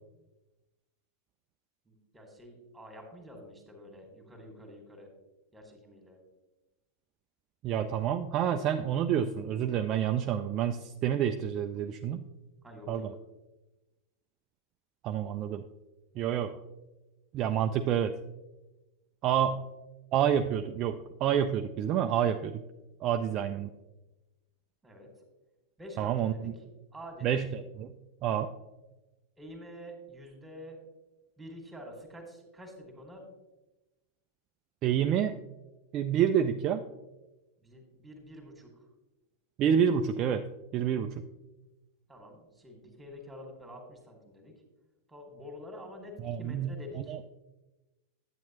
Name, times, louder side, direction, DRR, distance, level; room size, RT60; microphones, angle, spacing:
voice 1, 1.9-5.1 5.5-6.2 12.6-13.1 19.2-19.5 23.1-23.5 24.8-25.1 25.8-26.5 26.9-27.4 29.4-30.8 31.4-33.2 37.6-38.7 42.1-44.5 45.1-47.1, equal, 5° right, 3 dB, 1.8 m, -48 dB
voice 2, 7.6-12.2 12.9-13.1 15.0-15.6 16.2-16.6 17.3-18.1 19.2-19.6 20.1-22.6 23.0-23.7 26.0-26.5 27.2-27.9 28.2-28.5 34.8-35.4 35.9-36.8 39.6-40.4 40.7-41.2 46.2-47.2, right 9 dB, 35° right, 7 dB, 0.3 m, -28 dB
8.8 x 8.5 x 2.9 m, 1.1 s
figure-of-eight pair, 90°, 0 cm